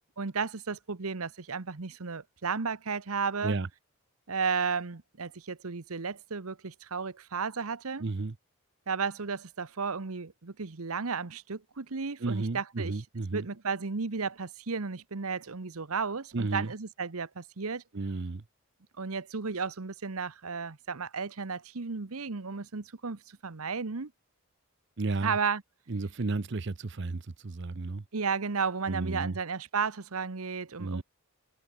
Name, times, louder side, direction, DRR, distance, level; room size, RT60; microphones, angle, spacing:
voice 1, 0.2-3.6 4.3-8.0 8.9-12.9 13.3-17.8 19.0-24.1 25.2-25.6 28.1-31.0, right 5 dB, 80° right, 1.0 m, -33 dB
voice 2, 8.0-8.3 12.2-13.4 16.3-16.7 17.9-18.4 25.0-25.4 25.9-28.0 28.9-29.4 30.8-31.0, right 3 dB, 50° right, 0.7 m, -33 dB
head